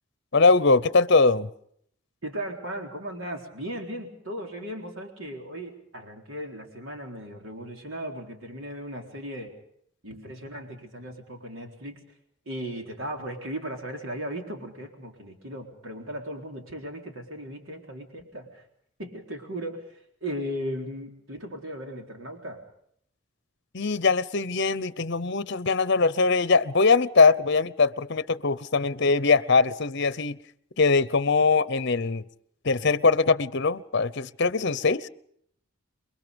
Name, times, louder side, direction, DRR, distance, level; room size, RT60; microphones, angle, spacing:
voice 1, 0.3-1.5 23.7-30.4 30.8-32.2 32.6-35.1, left 4 dB, 55° left, 0.8 m, -22 dB
voice 2, 2.2-9.6 10.0-12.0 12.5-18.7 19.0-22.6, equal, 70° right, 4.0 m, -37 dB
28.5 x 23.0 x 5.3 m
head